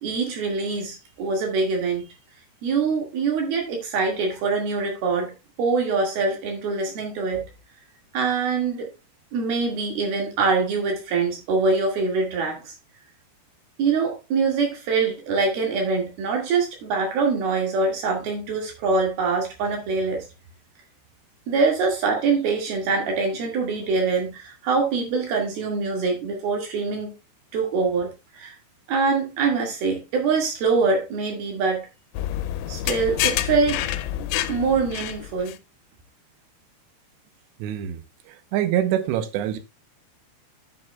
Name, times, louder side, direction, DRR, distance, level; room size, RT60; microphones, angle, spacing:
voice 1, 0.0-2.1 2.6-5.3 5.6-7.5 8.1-8.9 9.3-12.7 13.8-20.3 21.5-27.1 27.5-28.6 28.9-31.9 32.7-33.9 34.5-35.6, right 4 dB, 65° right, 3.7 m, -24 dB
sound 1, 32.1-35.6, left 12 dB, 85° left, 2.8 m, -28 dB
voice 2, 37.6-38.0 38.3-39.6, right 11 dB, 90° right, 3.0 m, -25 dB
10.0 x 7.9 x 2.3 m
omnidirectional pair, 4.9 m